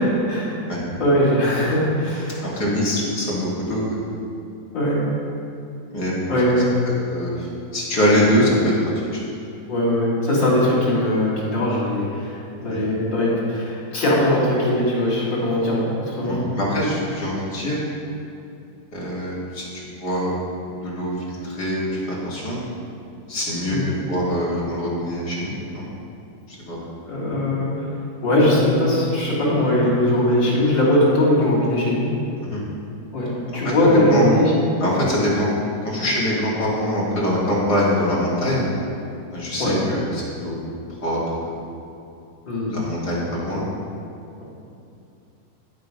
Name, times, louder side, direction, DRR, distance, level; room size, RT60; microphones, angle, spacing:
voice 1, 1.0-2.5 4.7-5.0 6.3-6.7 9.7-16.5 23.7-23.9 27.1-32.1 33.1-34.5 39.6-39.8 42.5-42.8, left 1 dB, 75° left, -6 dB, 3.7 m, -20 dB
voice 2, 2.4-4.0 5.9-6.3 7.1-8.7 9.1-9.2 12.6-12.8 16.2-17.8 18.9-20.3 20.8-21.1 21.4-22.6 23.3-25.9 26.5-26.8 32.4-32.6 33.6-33.7 34.1-34.4 34.8-35.5 35.8-38.7 39.3-40.7 41.0-41.6 42.7-43.6, equal, 60° left, -7 dB, 3.1 m, -23 dB
10.5 x 7.6 x 5.2 m, 2.6 s
omnidirectional pair, 2.0 m